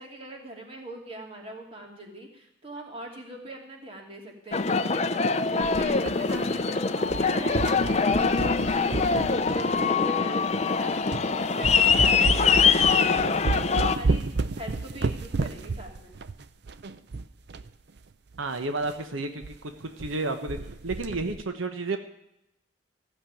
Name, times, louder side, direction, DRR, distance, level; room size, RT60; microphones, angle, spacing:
voice 1, 0.0-16.2, right 1 dB, 30° right, 0 dB, 2.7 m, -42 dB
Aircraft, 4.5-14.0, left 5 dB, 35° left, 0.6 m, -23 dB
sound 1, 5.6-6.7 7.0-10.0 10.6-10.7 11.1-11.3 11.6-17.7 18.0-18.1 18.3-18.4 18.8-19.0 19.4-19.6 19.8-20.2 20.5-21.4, right 3 dB, 55° right, 0.6 m, -31 dB
voice 2, 18.4-19.7 20.0-20.6 20.8-22.0, right 3 dB, 90° right, 7 dB, 1.0 m, -31 dB
15.0 x 6.7 x 9.1 m, 0.82 s
head